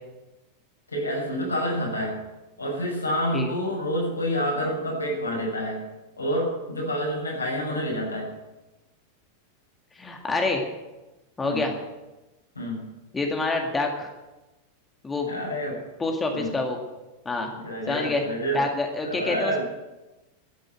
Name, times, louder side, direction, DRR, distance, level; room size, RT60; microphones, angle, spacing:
voice 1, 0.9-2.2 2.6-5.8 6.2-8.3 11.4-11.7 12.5-12.9 15.3-15.8 16.3-16.6 17.5-18.7 19.0-19.6, equal, 80° left, -2 dB, 6.9 m, -28 dB
voice 2, 10.0-10.7 11.4-11.8 13.1-14.1 15.0-15.3 16.0-16.8 17.3-17.5 17.9-18.2 18.5-19.6, left 3 dB, 15° left, 2 dB, 2.1 m, -27 dB
13.5 x 10.0 x 9.6 m, 1.1 s
figure-of-eight pair, 90°, 0 cm